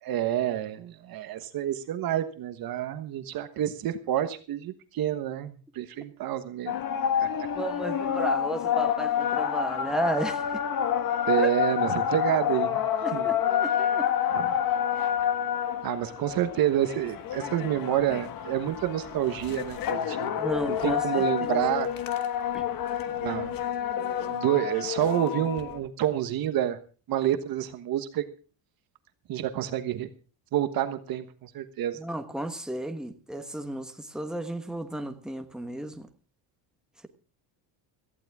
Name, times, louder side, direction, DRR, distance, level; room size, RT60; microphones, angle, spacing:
voice 1, 0.0-6.7 7.2-7.3 11.3-12.8 13.1-13.3 14.3-14.6 15.2-15.3 15.8-20.3 20.7-21.9 23.2-23.5 24.0-26.8 27.1-28.2 29.3-30.1 30.5-32.0, right 11 dB, 50° right, 1.3 m, -28 dB
sound 1, 6.7-25.8, left 9 dB, 45° left, 1.6 m, -28 dB
voice 2, 7.5-10.6 11.4-11.5 13.0-14.1 20.4-21.6 22.5-22.7 32.0-36.1, right 1 dB, ahead, 1.3 m, -33 dB
18.0 x 15.0 x 3.6 m
cardioid pair, 170°, 46 cm